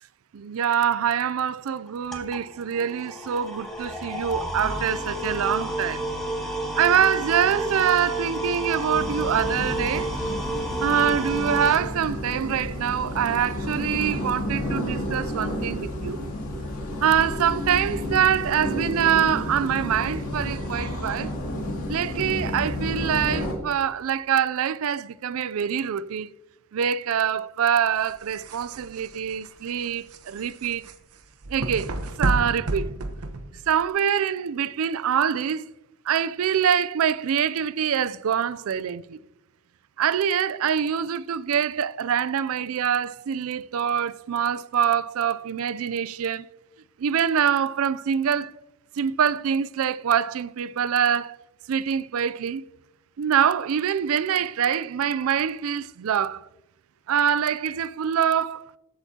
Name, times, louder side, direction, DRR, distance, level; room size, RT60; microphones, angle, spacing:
voice 1, 0.3-6.1 6.8-10.1 10.8-16.3 17.0-21.3 21.9-26.3 26.7-30.8 31.5-31.9 32.2-32.9 33.7-35.7 36.1-39.2 40.0-46.4 47.0-48.5 49.0-51.4 51.7-52.6 53.2-56.4 57.1-58.8, right 8 dB, 70° right, 0.4 m, -24 dB
sound 1, 1.9-11.8, right 1 dB, ahead, 2.1 m, -31 dB
sound 2, 8.9-23.5, left 1 dB, 85° left, 2.3 m, -31 dB
sound 3, 28.0-33.9, right 2 dB, 90° right, 0.9 m, -31 dB
14.5 x 8.0 x 2.8 m
head